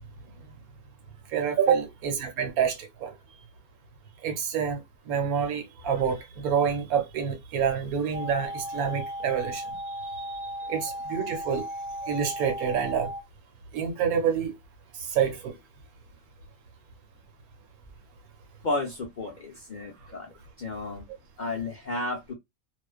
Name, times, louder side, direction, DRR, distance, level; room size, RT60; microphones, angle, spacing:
voice 1, 1.3-3.1 4.2-9.8 10.2-10.3 10.7-11.6 12.0-13.1 13.7-14.5 15.1-15.5, right 7 dB, 80° right, 1.2 m, -27 dB
sound 1, 8.1-13.2, equal, 60° right, 0.7 m, -36 dB
voice 2, 18.6-21.1 21.4-22.3, left 2 dB, 75° left, 0.4 m, -33 dB
2.4 x 2.1 x 2.3 m
omnidirectional pair, 1.5 m